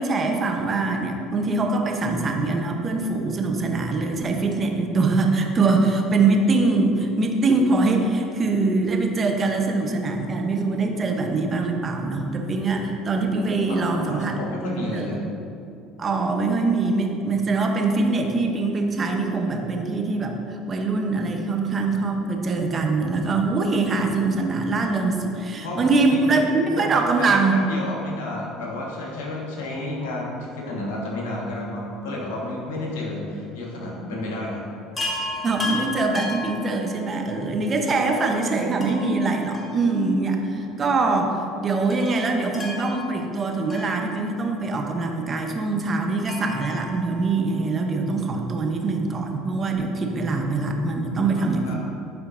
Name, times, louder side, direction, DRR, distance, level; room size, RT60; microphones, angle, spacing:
voice 1, 0.0-14.4 14.6-15.1 16.0-27.6 35.4-51.7, right 3 dB, 35° right, 3 dB, 0.8 m, -23 dB
voice 2, 13.7-15.2 25.6-26.4 26.7-34.6 51.3-51.8, left 1 dB, 80° left, -3 dB, 1.5 m, -31 dB
Chime, 35.0-37.4 38.8-40.3 40.6-40.7 41.9-44.6 46.3-47.9 49.4-49.5 49.8-49.9, left 2 dB, 20° left, 1.4 m, -34 dB
10.5 x 4.4 x 2.6 m, 2.7 s
hypercardioid pair, 75°, 0 cm